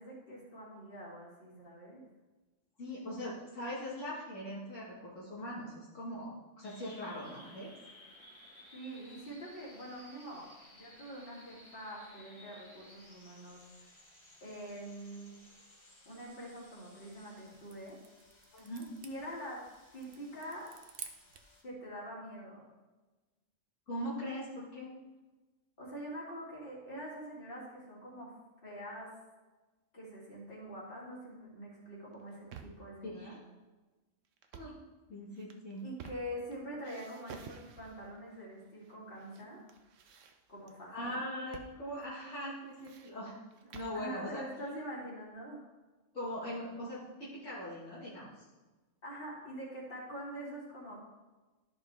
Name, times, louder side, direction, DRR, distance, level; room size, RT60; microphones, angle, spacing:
voice 1, 0.0-2.0 8.7-13.9 14.4-15.3 16.0-18.0 19.0-19.6 19.9-20.7 21.6-22.6 25.8-28.3 28.6-29.1 29.9-33.4 35.8-39.7 40.5-41.2 43.9-45.6 49.0-51.0, equal, 45° left, -6 dB, 2.8 m, -45 dB
voice 2, 2.8-7.7 18.5-18.9 23.9-24.9 33.0-33.3 34.5-34.8 35.1-35.9 40.9-43.4 43.7-44.4 46.1-48.5, equal, 75° left, -8 dB, 2.3 m, -41 dB
sound 1, 6.6-21.6, left 1 dB, 25° left, 1.2 m, -59 dB
sound 2, 17.1-21.6, right 6 dB, 55° right, 0.8 m, -52 dB
sound 3, 32.1-32.9 34.4-34.8 35.3-36.5 36.8-38.1 38.8-39.4 39.7-40.7 41.5-41.8 42.0-42.1 42.6-44.0, right 6 dB, 80° right, 1.1 m, -52 dB
13.0 x 5.3 x 3.5 m, 1.2 s
omnidirectional pair, 1.3 m